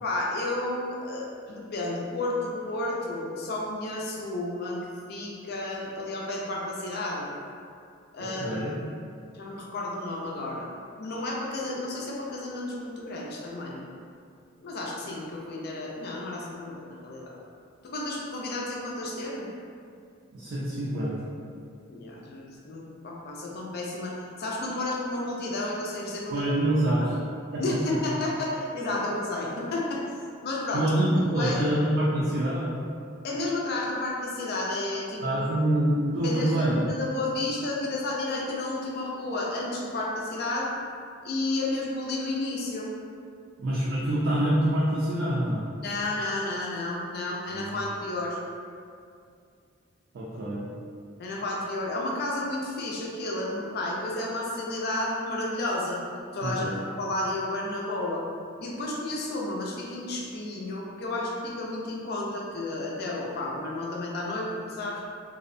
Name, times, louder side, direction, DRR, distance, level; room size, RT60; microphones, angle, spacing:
voice 1, 0.0-4.8 5.1-7.3 8.1-8.6 9.3-10.7 11.0-13.8 14.6-17.3 17.8-19.5 21.9-26.4 27.6-30.0 30.4-30.9 31.3-31.6 33.2-35.5 36.2-40.7 41.2-42.9 45.8-48.4 51.2-56.0 56.3-58.2 58.6-65.0, left 2 dB, 50° left, -3 dB, 0.4 m, -32 dB
voice 2, 8.2-8.8 20.3-21.3 26.3-27.1 27.5-27.6 27.9-28.0 30.7-32.8 35.2-36.8 43.6-45.6 47.5-47.8 50.1-50.7 56.4-56.8, right 1 dB, 60° right, -7 dB, 0.4 m, -26 dB
2.6 x 2.0 x 2.5 m, 2.3 s
head